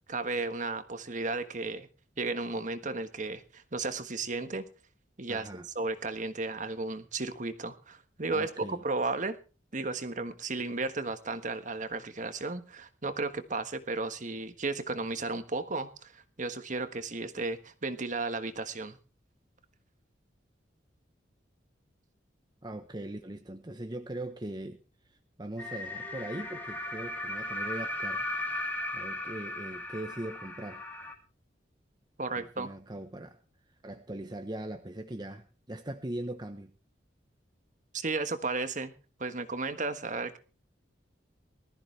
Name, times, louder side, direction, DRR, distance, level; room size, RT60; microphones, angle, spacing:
voice 1, 0.1-1.9 2.2-4.6 5.2-9.4 9.7-19.0 32.2-32.7 37.9-38.9 39.2-40.4, right 3 dB, 45° right, 1.4 m, -34 dB
voice 2, 5.3-5.7 8.3-8.8 22.6-28.2 28.9-30.9 32.3-33.4 33.8-36.7, right 1 dB, 25° right, 1.0 m, -40 dB
sound 1, 25.6-31.1, left 1 dB, 10° left, 2.6 m, -36 dB
20.0 x 14.0 x 3.4 m
head